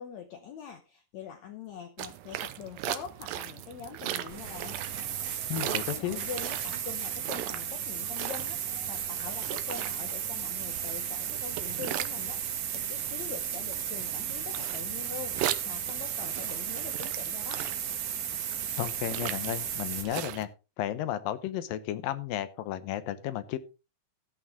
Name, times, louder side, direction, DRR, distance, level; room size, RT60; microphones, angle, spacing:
voice 1, 0.0-4.8 5.5-12.4 12.7-17.7, left 7 dB, 65° left, 6 dB, 2.0 m, -43 dB
sound 1, 2.0-20.5, right 13 dB, 90° right, 2.5 m, -39 dB
sound 2, 4.3-20.0, right 9 dB, 60° right, 2.6 m, -34 dB
voice 2, 5.5-6.2 18.8-20.5 20.8-23.6, left 12 dB, 80° left, 13 dB, 2.6 m, -33 dB
13.5 x 8.6 x 3.6 m, 0.29 s
omnidirectional pair, 4.0 m